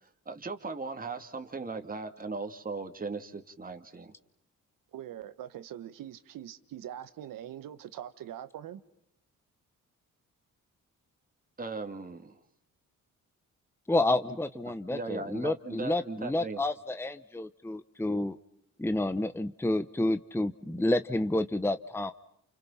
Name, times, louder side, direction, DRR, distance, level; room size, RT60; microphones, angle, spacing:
voice 1, 0.3-4.1 11.6-12.3 14.7-16.7, right 3 dB, 25° right, 2.4 m, -38 dB
voice 2, 4.9-8.8, right 11 dB, 85° right, 1.6 m, -43 dB
voice 3, 13.9-18.4 18.8-22.1, left 2 dB, 5° left, 1.0 m, -29 dB
29.5 x 29.5 x 5.8 m
cardioid pair, 80°, 32 cm